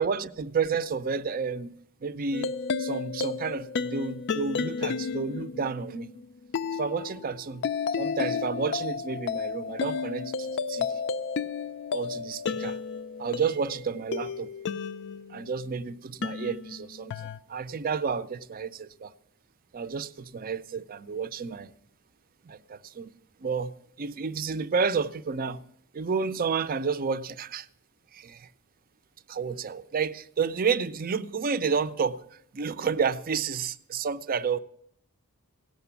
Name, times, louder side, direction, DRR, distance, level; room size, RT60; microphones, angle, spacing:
voice 1, 0.0-6.1 6.7-7.7 8.0-11.0 11.9-12.8 13.2-14.5 15.3-19.1 19.7-21.7 22.4-23.1 23.4-23.7 24.0-25.6 25.9-27.7 28.1-28.5 29.3-32.2 32.5-34.6, right 5 dB, 40° right, 0.5 m, -30 dB
sound 1, 2.3-15.7 16.2-17.4, left 5 dB, 55° left, 0.4 m, -32 dB
17.0 x 5.9 x 7.0 m
head